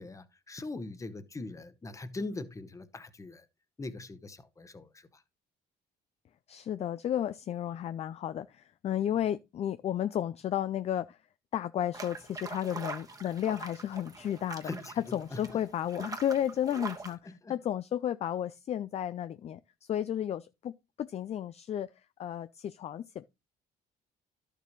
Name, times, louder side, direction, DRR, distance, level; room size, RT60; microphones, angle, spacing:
voice 1, 0.0-3.5 3.8-5.2 14.6-15.6 17.2-17.6, left 2 dB, 20° left, 1.0 m, -41 dB
voice 2, 6.5-11.2 11.5-19.6 19.9-20.7 21.0-21.9 22.2-23.2, left 10 dB, 40° left, 0.4 m, -33 dB
sound 1, 11.9-17.1, right 3 dB, 20° right, 1.2 m, -43 dB
11.5 x 6.7 x 3.0 m
cardioid pair, 110°, 17 cm